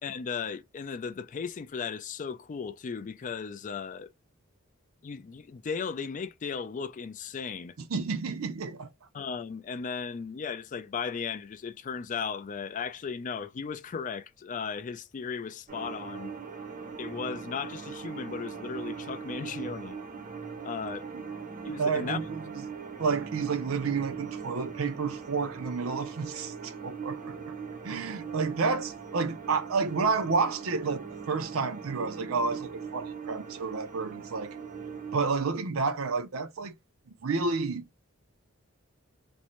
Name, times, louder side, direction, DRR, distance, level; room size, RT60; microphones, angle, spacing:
voice 1, 0.0-4.1 5.0-7.7 9.1-16.3 17.0-20.0 20.6-21.1 21.6-22.2, left 6 dB, 40° left, 0.4 m, -36 dB
voice 2, 7.8-8.9 21.8-22.6 23.0-27.3 27.8-34.5 35.1-36.7 37.2-37.9, right 4 dB, 85° right, 0.6 m, -30 dB
sound 1, 15.7-35.3, right 6 dB, 40° right, 0.6 m, -40 dB
2.6 x 2.1 x 2.9 m
head